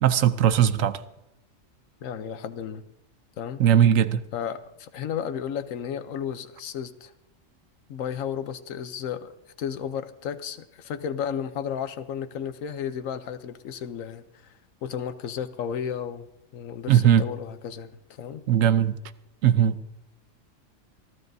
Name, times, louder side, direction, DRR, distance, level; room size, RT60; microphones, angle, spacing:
voice 1, 0.0-1.0 3.6-4.2 16.9-17.2 18.5-18.9 19.4-19.8, right 10 dB, 80° right, 13 dB, 1.1 m, -19 dB
voice 2, 2.0-2.8 3.4-3.6 4.3-7.1 7.9-9.3 9.6-14.2 14.8-18.4, left 8 dB, 90° left, 11 dB, 1.1 m, -33 dB
27.5 x 13.0 x 2.7 m, 0.88 s
omnidirectional pair, 1.3 m